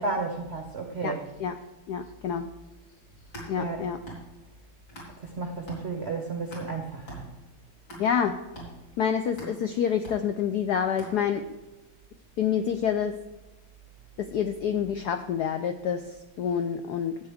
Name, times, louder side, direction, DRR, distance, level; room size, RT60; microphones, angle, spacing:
voice 1, 0.0-1.3 3.6-3.9 5.2-7.2, right 3 dB, 65° right, 3 dB, 0.6 m, -32 dB
voice 2, 1.0-1.6 1.9-2.5 3.5-4.0 8.0-8.4 9.0-11.4 12.4-13.1 14.2-17.2, left 8 dB, 80° left, 7 dB, 0.9 m, -27 dB
sound 1, 3.1-5.4 5.7-11.6, right 1 dB, 50° left, 4.1 m, -45 dB
14.0 x 8.2 x 3.5 m, 1.1 s
omnidirectional pair, 2.3 m